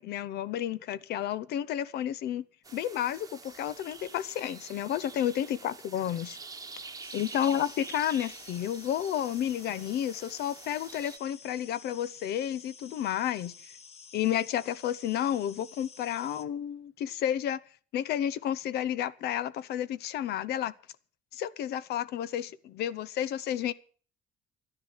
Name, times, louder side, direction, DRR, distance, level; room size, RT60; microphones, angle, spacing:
voice 1, 0.0-2.4 2.7-6.4 7.1-13.5 14.1-17.6 17.9-20.7 21.3-23.7, left 10 dB, 75° left, 0.9 m, -31 dB
sound 1, 2.6-11.2, right 4 dB, 20° right, 1.1 m, -47 dB
sound 2, 7.0-16.4, left 6 dB, 35° left, 1.2 m, -51 dB
12.5 x 10.0 x 7.5 m
cardioid pair, 110°, 17 cm